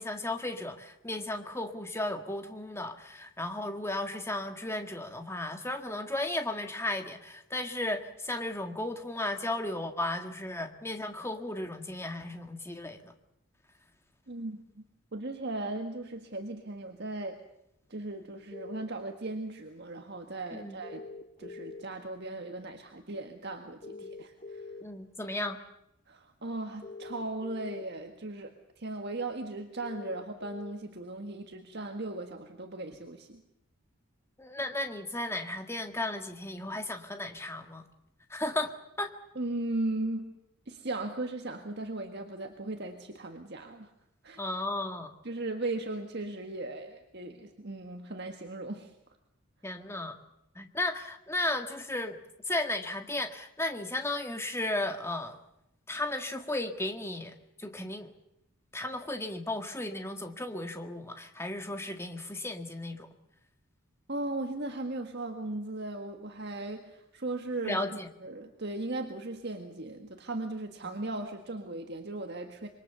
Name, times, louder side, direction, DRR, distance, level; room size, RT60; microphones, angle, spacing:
voice 1, 0.0-13.1 20.5-20.8 23.9-24.1 24.8-25.6 34.4-37.9 38.3-39.1 44.4-45.1 49.6-50.2 50.6-52.2 52.5-55.4 55.9-58.1 58.7-63.1 67.6-68.1 70.8-71.0, left 1 dB, 10° left, 6 dB, 1.8 m, -35 dB
voice 2, 14.3-14.8 15.1-17.4 17.9-21.1 21.4-24.7 26.1-33.4 39.4-40.3 40.7-43.9 44.2-44.4 45.2-48.9 64.1-67.8 68.2-72.7, right 2 dB, 50° right, 4 dB, 1.7 m, -37 dB
sound 1, 18.5-18.8 20.8-21.8 23.8-24.8 26.8-27.8 29.8-30.7, left 3 dB, 35° left, 1.7 m, -43 dB
26.5 x 23.0 x 6.9 m, 0.82 s
head